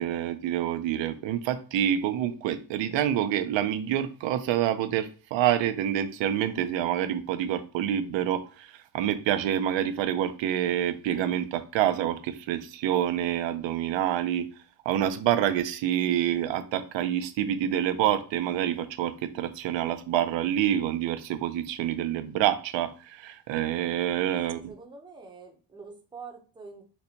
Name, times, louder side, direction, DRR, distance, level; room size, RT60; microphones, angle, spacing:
voice 1, 0.0-14.5 14.9-24.7, right 11 dB, 90° right, 0.5 m, -27 dB
voice 2, 24.5-26.8, right 4 dB, 10° right, 0.5 m, -46 dB
4.1 x 2.1 x 2.7 m
cardioid pair, 140°, 44 cm